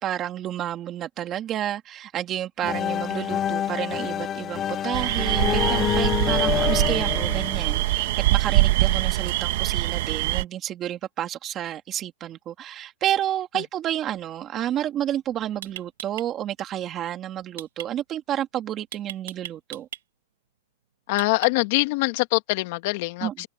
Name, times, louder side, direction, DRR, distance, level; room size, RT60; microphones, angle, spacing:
voice 1, 0.0-19.9 23.2-23.5, right 11 dB, 25° right, 2.5 m, -30 dB
sound 1, 2.6-8.4, left 10 dB, 25° left, 0.5 m, -27 dB
sound 2, 4.9-10.4, right 17 dB, 60° right, 1.5 m, -23 dB
sound 3, 15.0-15.1 15.6-16.3 17.6-17.9 18.9-20.0 21.2-21.8, right 11 dB, 80° right, 1.9 m, -37 dB
voice 2, 21.1-23.5, left 22 dB, 50° left, 1.9 m, -24 dB
hypercardioid pair, 145°, 0 cm